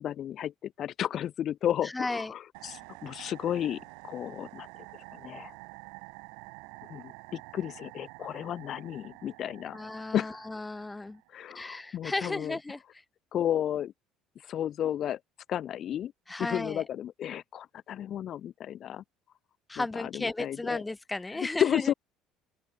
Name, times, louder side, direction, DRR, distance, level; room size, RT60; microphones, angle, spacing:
voice 1, 0.0-4.7 4.9-5.5 6.9-9.8 10.1-10.4 11.3-12.6 13.3-13.9 14.4-15.2 15.5-16.1 16.4-19.0 19.8-20.8 21.3-21.9, left 10 dB, 55° left, 0.7 m, -33 dB
voice 2, 1.8-2.3 9.7-11.2 11.5-12.8 16.3-16.8 19.7-21.9, left 2 dB, 15° left, 1.1 m, -34 dB
sound 1, 2.5-11.4, right 35 dB, 80° right, 1.8 m, -49 dB
open air
supercardioid pair, 80°, 0 cm